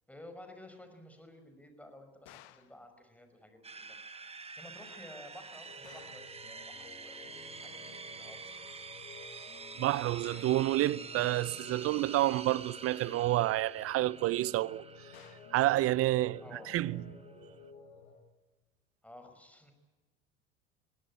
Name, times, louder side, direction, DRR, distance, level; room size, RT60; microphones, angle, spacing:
voice 1, 0.1-8.8 16.4-16.8 19.0-19.7, left 1 dB, 5° left, 5.5 m, -53 dB
sound 1, 2.3-2.8 5.8-6.3 10.2-10.7 15.1-15.6, left 16 dB, 65° left, 1.5 m, -57 dB
sound 2, 3.6-17.7, right 4 dB, 20° right, 1.3 m, -48 dB
sound 3, 5.6-18.2, left 4 dB, 80° left, 7.3 m, -53 dB
voice 2, 9.8-14.8 15.5-16.4 16.7-17.0, right 16 dB, 40° right, 0.6 m, -29 dB
21.5 x 17.5 x 9.7 m
hypercardioid pair, 75°, 34 cm